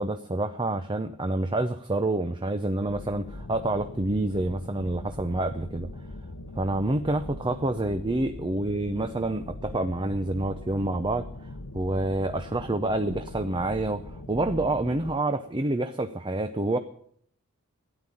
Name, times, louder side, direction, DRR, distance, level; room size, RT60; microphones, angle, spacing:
voice 1, 0.0-5.9 6.6-16.8, right 2 dB, 20° right, 9 dB, 0.6 m, -28 dB
sound 1, 2.8-15.1, left 2 dB, 85° left, 1.0 m, -41 dB
13.5 x 10.0 x 8.6 m, 0.63 s
head